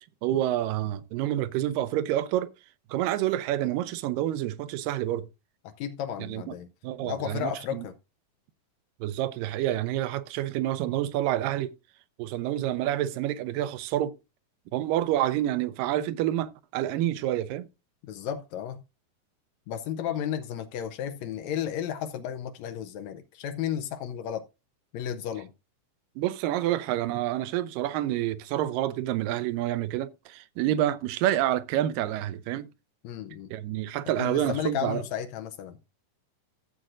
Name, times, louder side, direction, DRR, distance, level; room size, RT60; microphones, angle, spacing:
voice 1, 0.2-2.5 2.9-5.3 6.3-6.6 6.8-7.9 9.0-11.7 12.2-14.2 14.7-17.7 26.2-32.7 33.5-35.0, right 13 dB, 80° right, 2.2 m, -28 dB
voice 2, 5.8-6.7 7.0-7.9 18.0-18.8 19.7-24.4 24.9-25.5 33.0-33.5 34.2-35.8, left 9 dB, 85° left, 1.6 m, -33 dB
14.5 x 7.6 x 2.5 m
omnidirectional pair, 4.0 m